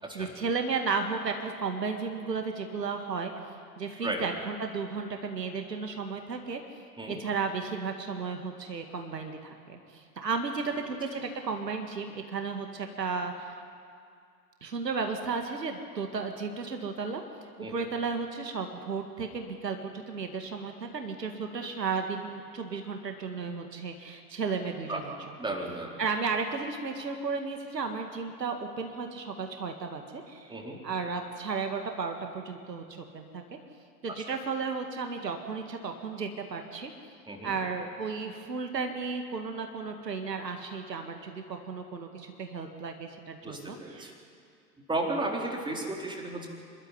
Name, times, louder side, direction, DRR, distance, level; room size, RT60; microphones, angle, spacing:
voice 1, 0.1-3.3 3.8-6.6 7.1-13.5 14.6-17.2 17.7-25.1 25.5-25.6 26.0-30.5 30.8-32.8 33.1-33.6 34.0-36.9 37.4-44.1, right 5 dB, 80° right, 5 dB, 2.1 m, -34 dB
voice 2, 25.4-26.0 30.5-30.8 37.3-37.6 43.4-44.1 44.9-46.5, right 2 dB, 10° right, 0 dB, 4.0 m, -34 dB
26.5 x 12.5 x 10.0 m, 2.3 s
figure-of-eight pair, 90°, 48 cm